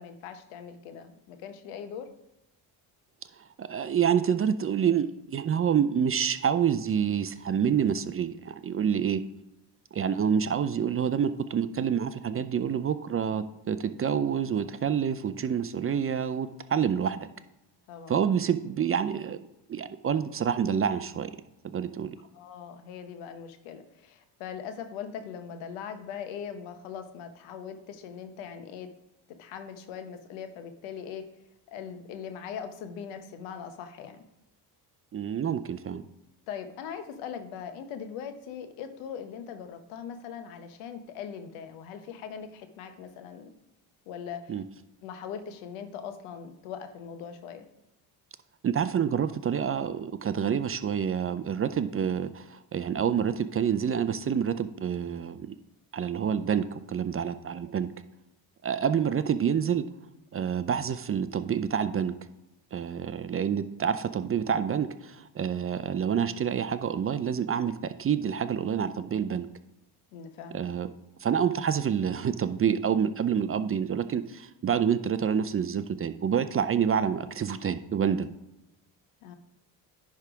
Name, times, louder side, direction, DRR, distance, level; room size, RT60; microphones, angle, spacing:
voice 1, 0.0-2.1 17.9-18.1 22.3-28.9 29.4-31.3 31.7-34.2 36.5-43.5 44.1-44.6 45.0-47.7 70.1-70.6 79.2-79.4, left 7 dB, 80° left, 8 dB, 1.1 m, -40 dB
voice 2, 3.6-9.2 9.9-17.3 18.1-19.4 19.7-21.3 21.6-22.2 35.1-36.0 44.5-44.6 48.6-55.6 55.9-57.9 58.6-59.8 60.3-62.1 62.7-69.5 70.5-70.9 71.2-78.3, right 8 dB, 30° right, 12 dB, 0.5 m, -27 dB
10.5 x 3.6 x 5.0 m, 0.91 s
supercardioid pair, 70°, 49 cm